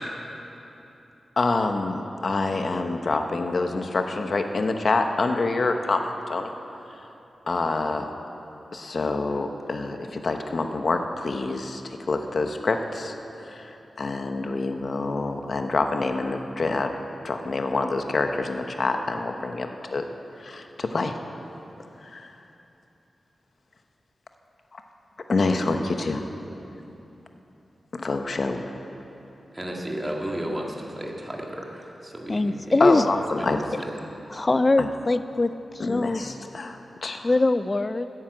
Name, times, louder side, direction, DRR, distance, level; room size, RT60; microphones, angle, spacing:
voice 1, 1.4-6.5 7.5-8.1 8.7-11.8 12.1-13.1 13.4-16.9 17.2-20.0 20.4-21.1 22.1-22.3 25.3-26.2 27.9-28.6 32.8-33.6 34.8-34.9 35.8-37.3, left 3 dB, 50° left, 5 dB, 0.9 m, -26 dB
voice 2, 29.5-33.0 33.3-33.9, right 1 dB, 15° right, -1 dB, 2.0 m, -34 dB
voice 3, 32.3-33.1 34.3-36.2 37.2-38.1, left 2 dB, 25° left, 12 dB, 0.3 m, -22 dB
13.5 x 9.7 x 8.5 m, 3.0 s
wide cardioid pair, 125°, 0 cm